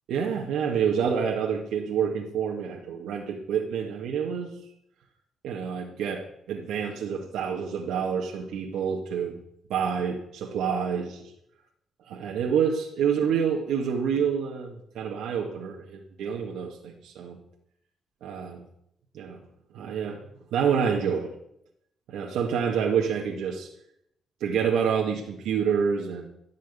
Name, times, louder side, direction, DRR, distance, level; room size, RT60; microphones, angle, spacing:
voice 1, 0.1-4.6 5.4-9.4 9.7-11.3 12.1-17.4 18.2-18.7 19.1-19.5 19.7-20.2 20.5-21.3 22.1-23.7 24.4-26.3, right 7 dB, 85° right, -1 dB, 2.0 m, -28 dB
17.0 x 6.4 x 8.3 m, 0.75 s
cardioid pair, 90°, 0 cm